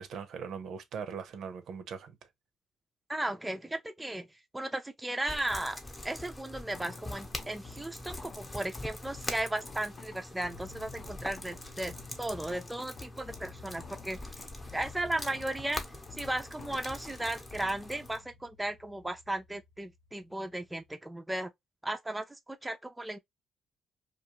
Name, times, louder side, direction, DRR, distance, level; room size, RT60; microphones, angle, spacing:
voice 1, 0.0-2.2, right 6 dB, 70° right, 0.6 m, -40 dB
voice 2, 3.1-4.3 4.5-14.4 14.7-15.8 16.1-21.5 21.8-23.2, right 1 dB, 10° right, 0.4 m, -36 dB
sound 1, 5.3-18.2, left 1 dB, 20° left, 0.7 m, -43 dB
sound 2, 6.6-20.9, left 5 dB, 55° left, 0.7 m, -51 dB
2.4 x 2.3 x 2.9 m
cardioid pair, 90°, 0 cm